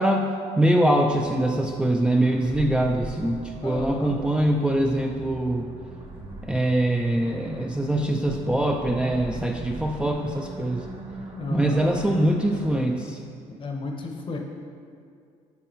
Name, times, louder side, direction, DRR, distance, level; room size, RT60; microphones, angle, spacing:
voice 1, 0.0-5.7 6.4-10.8 11.5-13.2, right 1 dB, 5° right, 1 dB, 0.4 m, -23 dB
sound 1, 1.1-12.8, right 1 dB, 40° right, 1.1 m, -40 dB
voice 2, 3.6-4.2 11.3-11.9 13.6-14.4, left 3 dB, 40° left, 3 dB, 0.8 m, -33 dB
9.2 x 4.7 x 3.0 m, 2.3 s
cardioid pair, 100°, 13 cm